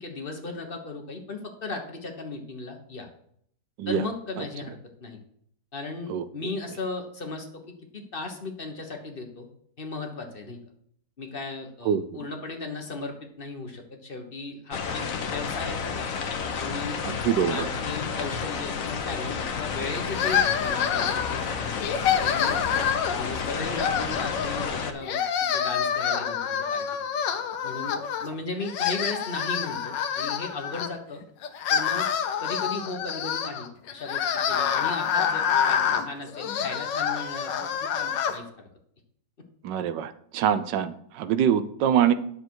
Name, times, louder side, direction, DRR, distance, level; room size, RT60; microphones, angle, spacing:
voice 1, 0.0-3.1 3.9-5.2 5.7-9.5 9.8-10.6 11.2-16.1 16.5-17.0 17.5-21.9 22.2-22.6 23.2-27.0 27.6-31.2 31.7-32.1 32.4-38.7, left 3 dB, 35° left, 3 dB, 1.3 m, -36 dB
sound 1, 14.7-24.9, left 6 dB, 55° left, 1.2 m, -31 dB
voice 2, 17.0-17.7 39.6-42.1, right 9 dB, 80° right, 13 dB, 1.3 m, -24 dB
sound 2, 20.1-21.4 21.8-23.3 23.7-24.7 25.0-28.3 28.6-30.9 31.4-38.4, left 8 dB, 80° left, 1.4 m, -27 dB
9.9 x 6.9 x 4.7 m, 0.67 s
omnidirectional pair, 1.9 m